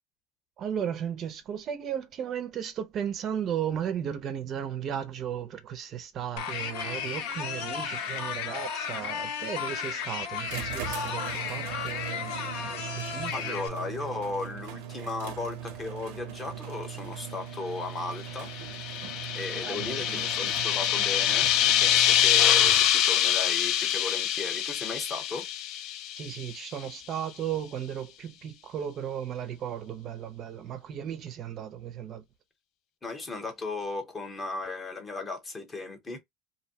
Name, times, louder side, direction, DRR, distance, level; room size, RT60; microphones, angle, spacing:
voice 1, 0.6-12.3 12.6-13.6 19.6-20.2 26.2-32.2, right 9 dB, 40° right, 0.5 m, -35 dB
sound 1, 6.4-13.7, left 7 dB, 80° left, 0.8 m, -34 dB
sound 2, 10.5-23.3, right 9 dB, 90° right, 0.6 m, -40 dB
voice 2, 13.3-18.5 19.3-25.5 33.0-36.2, left 3 dB, 20° left, 0.8 m, -36 dB
sound 3, 18.3-26.6, left 10 dB, 55° left, 0.4 m, -25 dB
2.6 x 2.1 x 2.7 m
cardioid pair, 140°, 0 cm